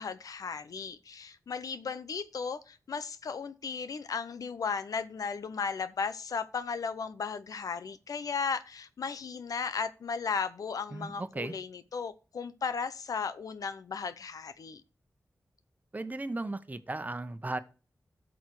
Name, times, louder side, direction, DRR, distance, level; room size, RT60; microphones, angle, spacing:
voice 1, 0.0-14.8, left 5 dB, 90° left, 0.8 m, -35 dB
voice 2, 10.9-11.5 15.9-17.6, right 2 dB, 30° right, 1.1 m, -36 dB
13.0 x 6.3 x 4.8 m
wide cardioid pair, 75°, 6 cm